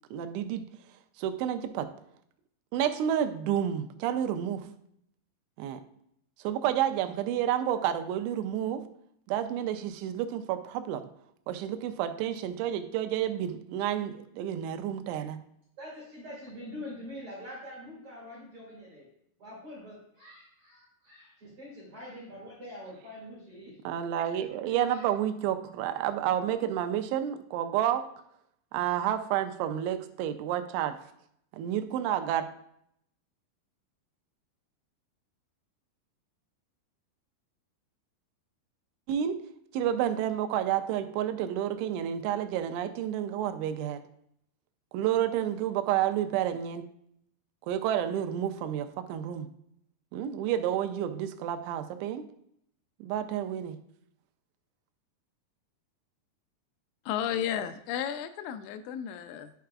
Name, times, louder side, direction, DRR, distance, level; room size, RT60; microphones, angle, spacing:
voice 1, 0.1-0.7 1.2-1.9 2.7-4.7 5.6-5.8 6.4-8.8 9.3-11.1 11.5-15.4 23.8-28.0 28.7-31.0 31.5-32.5 39.1-39.4 39.7-44.0 44.9-46.9 47.7-49.5 50.1-52.2 53.0-53.8, right 10 dB, 85° right, 8 dB, 2.9 m, -30 dB
voice 2, 15.8-19.1 19.4-23.8 24.7-25.1, left 1 dB, 40° right, -6 dB, 2.3 m, -45 dB
voice 3, 57.1-59.5, left 9 dB, 85° left, 10 dB, 2.8 m, -33 dB
10.0 x 5.7 x 2.3 m, 0.72 s
omnidirectional pair, 5.3 m